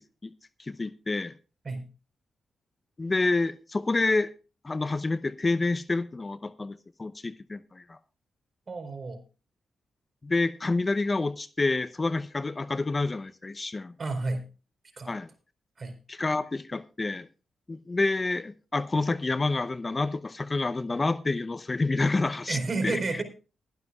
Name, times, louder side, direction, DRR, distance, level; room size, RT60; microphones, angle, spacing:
voice 1, 0.6-1.3 3.0-4.3 4.6-8.0 10.2-13.9 15.1-15.3 16.1-17.3 17.7-22.6 22.8-23.0, left 3 dB, 35° left, 13 dB, 0.8 m, -28 dB
voice 2, 8.7-9.2 14.0-14.4 15.0-15.2 15.8-15.9 22.5-23.2, right 3 dB, 45° right, 6 dB, 4.2 m, -31 dB
21.0 x 11.0 x 2.4 m, 0.33 s
hypercardioid pair, 40°, 0 cm